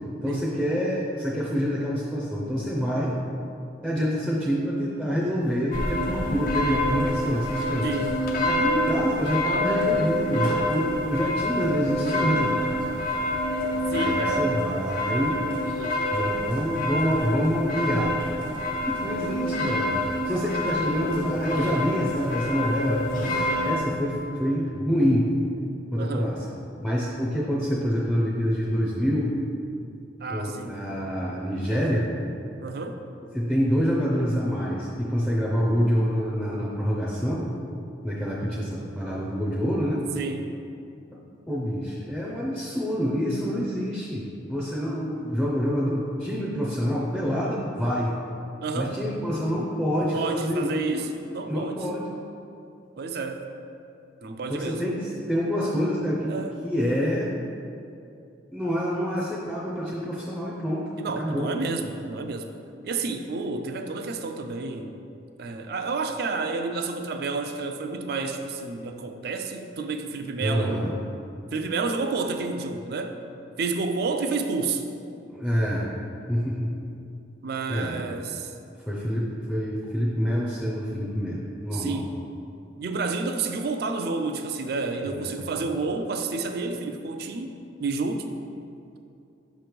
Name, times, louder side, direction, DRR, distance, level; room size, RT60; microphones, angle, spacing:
voice 1, 0.2-3.1 3.8-7.9 8.4-12.7 13.9-15.4 16.1-18.1 18.9-25.3 25.9-26.4 26.8-29.3 30.3-32.1 33.3-37.5 38.0-40.0 41.5-44.2 44.5-48.1 48.7-51.1 51.5-52.0 54.5-56.3 56.6-57.3 58.5-60.8 61.2-61.5 70.4-70.9 75.3-75.9 76.3-76.7 77.7-78.0 78.9-82.0 85.0-85.4, equal, 5° left, -7 dB, 0.5 m, -26 dB
sound 1, 5.7-23.8, left 1 dB, 50° left, 0.6 m, -27 dB
voice 2, 7.8-8.2 13.9-14.7 26.0-26.3 30.2-30.8 32.6-33.0 40.2-40.5 48.6-49.0 50.1-51.1 51.3-51.8 53.0-53.4 54.2-54.8 56.3-56.6 61.0-62.5 62.8-65.0 65.4-70.9 71.5-73.2 73.6-74.8 77.4-78.5 81.7-82.2 82.8-88.3, right 3 dB, 55° right, 6 dB, 0.4 m, -30 dB
6.0 x 3.1 x 5.1 m, 2.6 s
head